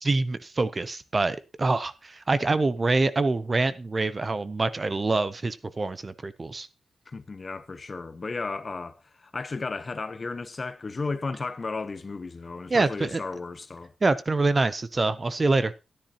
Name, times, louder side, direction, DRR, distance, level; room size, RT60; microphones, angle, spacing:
voice 1, 0.0-6.7 12.7-13.2 14.0-15.7, right 3 dB, 30° right, 0.6 m, -25 dB
voice 2, 7.1-13.9, left 3 dB, 35° left, 0.8 m, -34 dB
13.0 x 10.5 x 2.9 m
wide cardioid pair, 115°, 0 cm